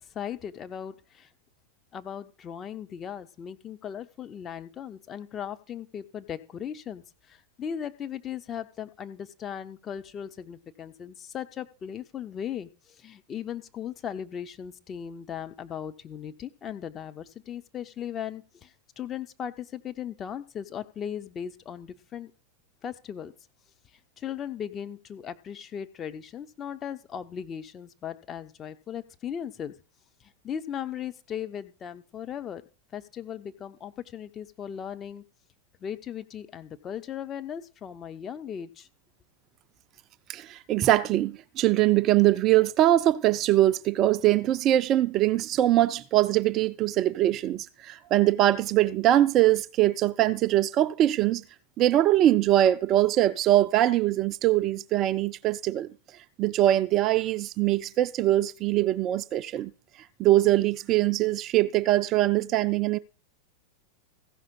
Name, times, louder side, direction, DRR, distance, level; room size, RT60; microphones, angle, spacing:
voice 1, 0.1-1.3 1.9-22.3 22.8-23.3 24.2-29.8 30.2-32.6 32.9-35.2 35.8-38.9, left 8 dB, 25° left, 0.8 m, -37 dB
voice 2, 40.3-51.4 51.8-55.9 56.4-59.7 60.2-63.0, right 14 dB, 35° right, 0.4 m, -22 dB
15.0 x 5.7 x 5.5 m
figure-of-eight pair, 90°, 0 cm